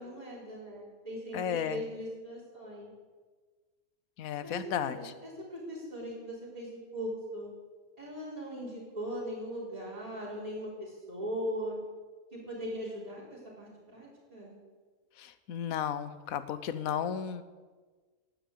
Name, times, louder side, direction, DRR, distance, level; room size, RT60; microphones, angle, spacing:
voice 1, 0.0-2.9 4.4-7.5 8.0-11.8 12.3-14.6, equal, 25° right, -7 dB, 4.0 m, -39 dB
voice 2, 1.3-1.7 4.2-5.0 15.5-17.4, left 9 dB, 75° left, 12 dB, 1.2 m, -33 dB
11.0 x 10.0 x 8.4 m, 1.4 s
omnidirectional pair, 1.5 m